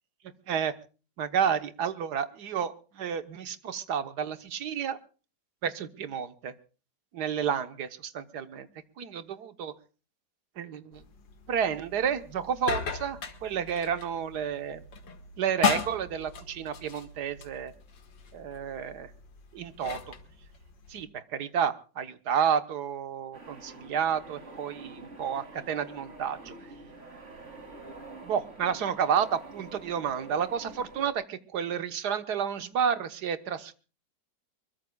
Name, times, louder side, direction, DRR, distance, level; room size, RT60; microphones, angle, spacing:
voice 1, 1.2-5.0 5.6-6.5 7.1-8.7 9.0-9.7 10.6-11.0 11.5-14.8 15.4-17.7 18.3-19.1 19.5-20.1 20.9-26.5 28.2-33.7, right 7 dB, 65° right, 11 dB, 1.7 m, -31 dB
sound 1, 10.9-21.0, left 7 dB, 85° left, 2.5 m, -37 dB
sound 2, 23.3-31.1, right 2 dB, 40° right, 3.5 m, -47 dB
24.0 x 22.0 x 2.3 m, 0.36 s
omnidirectional pair, 1.9 m